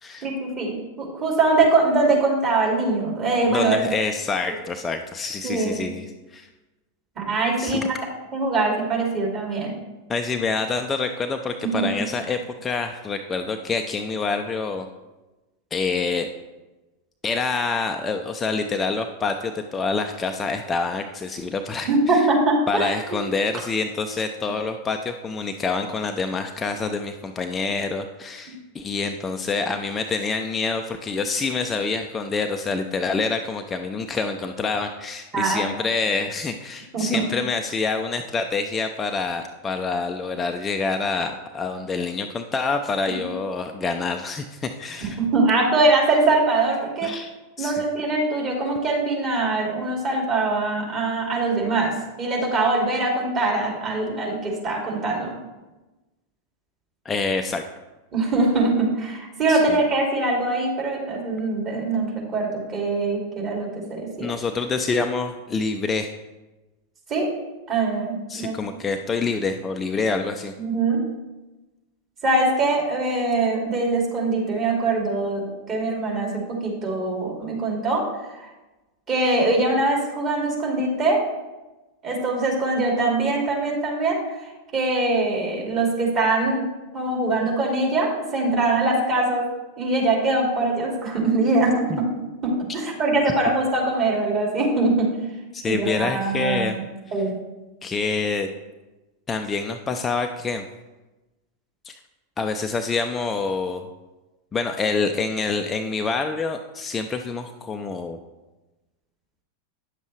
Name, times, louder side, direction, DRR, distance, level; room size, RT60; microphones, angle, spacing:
voice 1, 0.2-3.8 5.4-5.7 7.2-8.0 8.3-9.8 11.6-11.9 21.8-22.9 35.3-35.7 36.9-37.2 43.1-43.2 45.0-47.1 47.6-55.4 58.1-64.3 67.1-67.3 67.7-68.6 70.6-71.0 72.2-78.0 78.4-78.5 79.1-81.2 82.0-86.6 86.9-89.5 89.8-92.0 92.4-95.1 95.6-96.8 97.1-97.3, right 2 dB, 30° right, -2 dB, 2.6 m, -22 dB
voice 2, 3.5-6.5 7.6-7.8 10.1-14.9 15.7-16.3 17.2-22.2 22.7-45.2 47.0-47.3 47.6-47.8 57.1-57.6 59.5-59.8 64.2-66.1 68.3-70.5 91.9-92.0 95.5-96.8 97.8-98.5 99.3-100.6 101.8-101.9 102.4-103.9 104.5-108.2, left 4 dB, 20° left, 5 dB, 0.5 m, -26 dB
9.7 x 7.2 x 3.2 m, 1.1 s
figure-of-eight pair, 90°, 0 cm